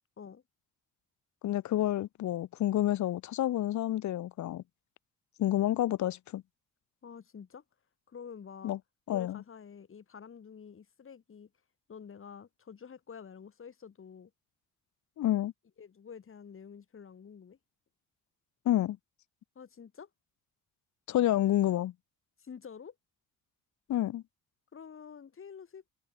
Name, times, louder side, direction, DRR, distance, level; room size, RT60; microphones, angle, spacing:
voice 1, 1.4-4.6 5.4-6.4 8.6-8.8 9.1-9.4 15.2-15.5 18.6-19.0 21.1-21.9 23.9-24.2, left 13 dB, 70° left, 1.2 m, -29 dB
voice 2, 7.0-7.6 8.1-8.7 9.1-11.5 11.9-14.3 15.8-17.6 19.5-20.1 22.4-22.9 24.7-25.8, left 7 dB, 45° left, 4.2 m, -48 dB
cardioid pair, 90°, 30 cm